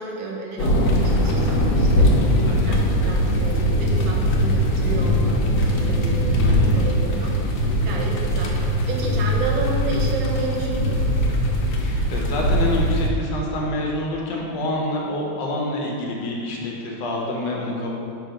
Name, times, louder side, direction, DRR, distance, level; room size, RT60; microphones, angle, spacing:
voice 1, 0.0-11.2, right 2 dB, 90° right, -1 dB, 1.6 m, -32 dB
sound 1, 0.6-13.1, equal, 90° left, 1.5 m, -20 dB
voice 2, 2.4-2.8 6.4-6.9 11.8-17.9, left 1 dB, 70° left, -2 dB, 1.5 m, -27 dB
5.7 x 3.6 x 5.0 m, 2.7 s
omnidirectional pair, 2.1 m